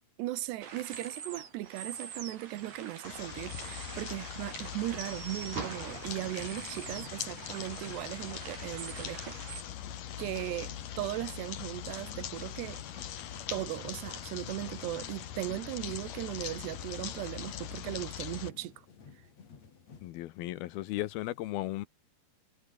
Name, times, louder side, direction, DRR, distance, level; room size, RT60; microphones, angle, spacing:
voice 1, 0.2-9.4 10.2-13.1 13.5-18.9 19.2-19.3, right 16 dB, 85° right, 3.2 m, -38 dB
sound 1, 0.6-9.6, right 6 dB, 65° right, 6.2 m, -44 dB
sound 2, 3.0-18.5, left 10 dB, 60° left, 3.1 m, -42 dB
sound 3, 5.2-20.1, left 6 dB, 40° left, 4.3 m, -53 dB
voice 2, 20.0-21.9, left 16 dB, 75° left, 2.6 m, -35 dB
omnidirectional pair, 4.8 m